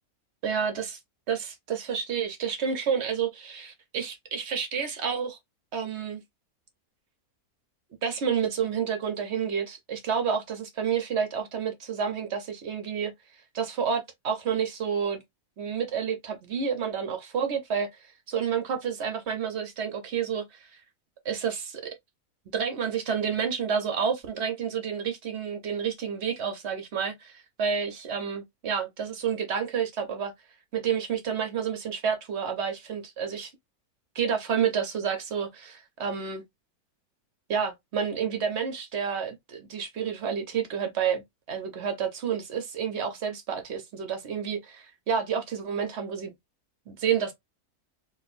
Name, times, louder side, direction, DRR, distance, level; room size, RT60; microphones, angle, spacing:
voice 1, 0.4-1.0 1.3-5.4 5.7-6.2 8.0-13.1 13.5-15.2 15.6-20.7 21.2-21.8 22.5-30.3 30.7-33.5 34.1-36.4 37.5-41.2 41.5-46.3 46.9-47.3, right 7 dB, 55° right, 0.9 m, -29 dB
4.2 x 2.6 x 2.4 m
omnidirectional pair, 1.6 m